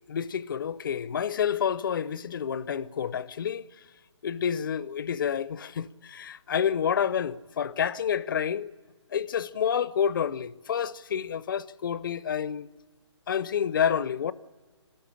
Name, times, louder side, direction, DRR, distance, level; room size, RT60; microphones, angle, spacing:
voice 1, 0.1-3.6 4.2-8.7 9.1-12.7 13.3-14.3, left 8 dB, 45° left, 0.6 m, -29 dB
25.5 x 13.0 x 10.0 m
hypercardioid pair, 155°, 15 cm